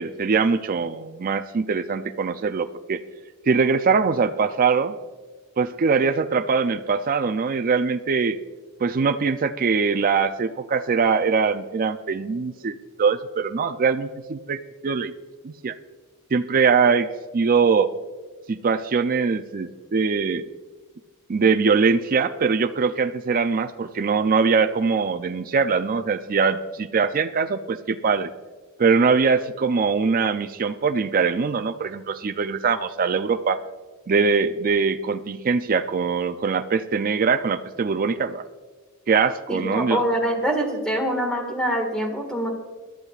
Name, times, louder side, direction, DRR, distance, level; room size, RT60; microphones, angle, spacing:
voice 1, 0.0-3.0 3.5-4.9 5.6-8.4 8.8-15.1 15.4-15.7 16.3-17.1 17.3-17.9 18.5-20.5 21.3-28.3 28.8-33.6 34.1-38.4 39.1-40.0, right 5 dB, 40° right, 9 dB, 0.4 m, -22 dB
voice 2, 39.5-42.5, equal, 5° left, 2 dB, 1.8 m, -24 dB
21.5 x 11.5 x 2.4 m, 1.3 s
head